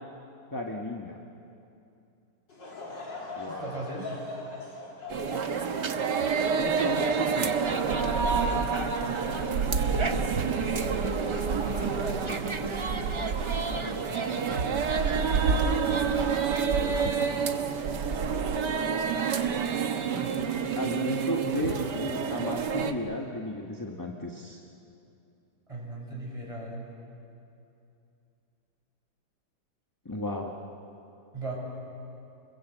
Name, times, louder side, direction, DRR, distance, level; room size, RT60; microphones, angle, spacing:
voice 1, 0.5-1.2 3.3-3.7 6.6-7.5 11.5-12.0 13.5-14.0 16.8-17.3 20.8-24.6 30.0-30.5, left 1 dB, 10° left, 1 dB, 1.2 m, -34 dB
Laughter / Crowd, 2.5-8.0 8.5-8.6 9.4-9.7, left 2 dB, 70° left, 4.2 m, -42 dB
voice 2, 3.5-4.1 7.7-10.8 11.6-12.5 13.7-14.7 20.1-20.3 25.7-26.9 31.3-31.6, right 2 dB, 15° right, -2 dB, 6.5 m, -38 dB
sound 1, 5.1-22.9, right 6 dB, 65° right, 1.8 m, -28 dB
sound 2, 6.8-16.6, right 3 dB, 30° right, 0.5 m, -36 dB
29.0 x 22.0 x 8.1 m, 2.7 s
omnidirectional pair, 2.0 m